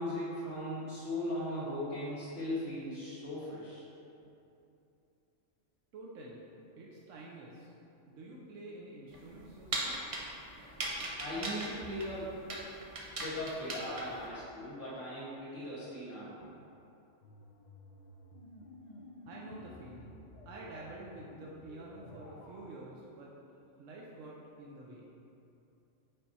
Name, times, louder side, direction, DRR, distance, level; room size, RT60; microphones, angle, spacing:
voice 1, 0.0-3.8 11.2-12.4 13.2-16.4, left 1 dB, 75° left, -12 dB, 2.0 m, -38 dB
voice 2, 5.9-6.4 6.8-7.7 8.1-10.0 19.2-20.2 20.4-23.3 23.8-25.1, right 2 dB, 85° right, -4 dB, 1.0 m, -48 dB
sound 1, 9.1-14.3, right 2 dB, 35° right, 0.6 m, -39 dB
sound 2, 17.2-22.8, left 1 dB, 55° left, 0.5 m, -53 dB
5.4 x 4.3 x 4.1 m, 2.8 s
omnidirectional pair, 1.3 m